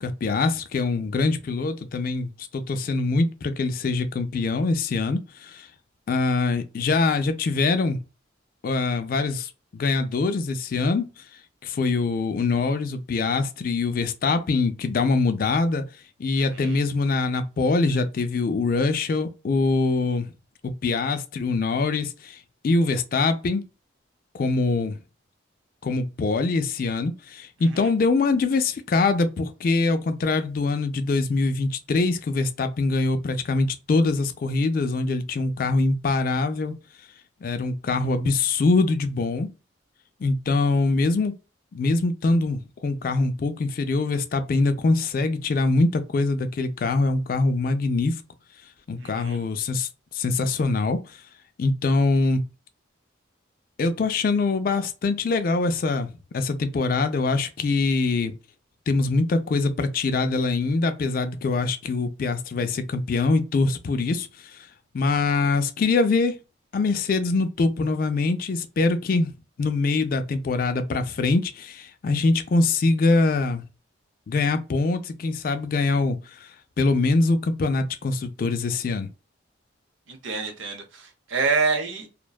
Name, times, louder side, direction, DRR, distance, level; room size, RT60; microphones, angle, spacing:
voice 1, 0.0-5.7 6.1-8.0 8.6-11.1 11.6-15.8 16.2-20.3 20.6-22.4 22.6-23.7 24.3-25.0 25.8-36.7 37.4-39.5 40.2-41.3 41.7-48.2 48.9-51.0 51.6-52.4 53.8-58.3 58.9-64.7 64.9-66.4 66.7-69.3 69.6-73.6 74.3-76.5 76.8-79.1, left 3 dB, 45° left, 0.3 m, -23 dB
voice 2, 16.4-16.8 27.7-27.9 49.0-49.4 80.1-82.1, right 4 dB, 80° right, 0.7 m, -27 dB
2.5 x 2.1 x 2.2 m
head